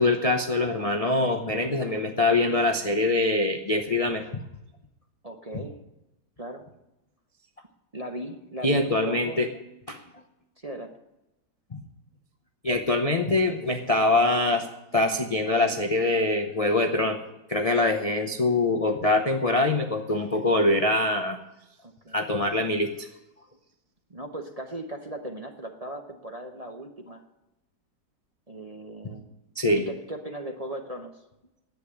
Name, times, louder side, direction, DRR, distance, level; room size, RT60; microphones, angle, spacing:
voice 1, 0.0-4.3 8.6-9.5 9.9-10.0 11.7-11.8 12.6-14.7 14.9-17.2 17.5-21.4 22.1-23.1 29.6-29.8, left 2 dB, 35° left, 5 dB, 0.5 m, -24 dB
voice 2, 5.2-5.8 6.4-6.7 7.9-9.4 10.6-11.0 21.8-22.2 24.1-27.2 28.5-29.3 29.8-31.2, right 1 dB, 30° right, 3 dB, 0.8 m, -38 dB
10.5 x 8.5 x 9.6 m, 0.95 s
omnidirectional pair, 1.9 m